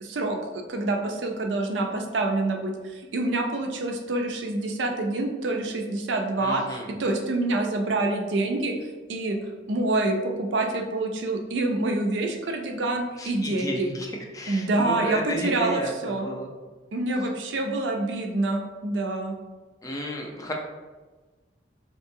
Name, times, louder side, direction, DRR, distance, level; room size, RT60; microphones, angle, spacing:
voice 1, 0.0-8.7 9.1-9.4 9.7-13.9 14.5-16.3 16.9-19.3, right 2 dB, 70° right, 3 dB, 0.5 m, -27 dB
voice 2, 6.4-6.9 13.2-16.5 19.8-20.5, equal, 20° left, 0 dB, 0.4 m, -33 dB
3.6 x 2.7 x 2.7 m, 1.3 s
head